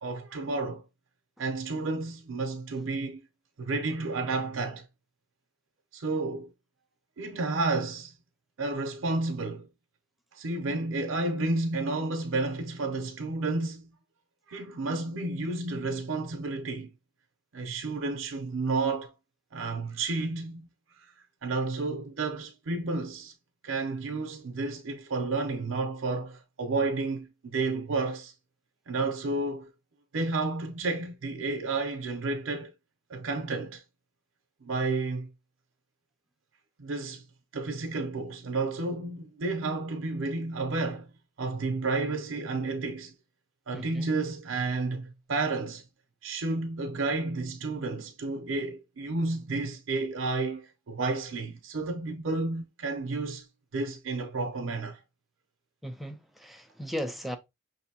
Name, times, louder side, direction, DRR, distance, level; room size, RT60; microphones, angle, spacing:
voice 1, 0.0-0.8 1.4-3.2 3.6-4.9 5.9-6.5 7.2-8.1 8.6-9.7 10.3-13.9 14.5-16.9 17.5-19.1 19.5-20.7 21.0-21.1 21.4-23.3 23.6-28.3 28.9-29.7 30.1-32.7 33.1-33.8 34.6-35.3 36.8-37.2 37.5-41.1 41.4-43.1 43.7-45.9 46.2-53.5 53.7-55.0, right 3 dB, 90° right, 0.6 m, -31 dB
voice 2, 43.7-44.1 55.8-57.4, equal, ahead, 0.5 m, -36 dB
5.9 x 2.7 x 2.7 m
head